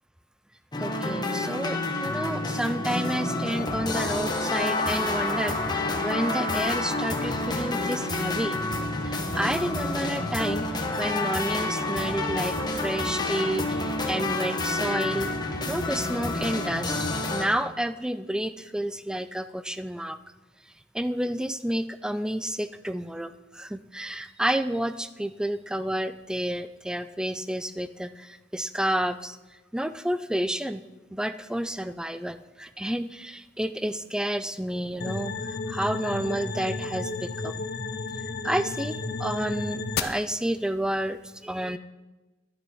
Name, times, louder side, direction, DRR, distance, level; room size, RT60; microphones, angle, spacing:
sound 1, 0.7-17.4, left 2 dB, 25° left, 1.3 m, -28 dB
voice 1, 0.8-8.6 9.1-10.7 11.0-12.6 12.8-15.3 15.7-16.9 17.3-20.2 20.9-29.4 29.7-30.8 31.1-37.6 38.4-41.8, right 1 dB, 5° right, 12 dB, 0.4 m, -30 dB
sound 2, 35.0-40.0, left 3 dB, 60° left, 0.8 m, -32 dB
12.0 x 9.5 x 5.5 m, 1.1 s
head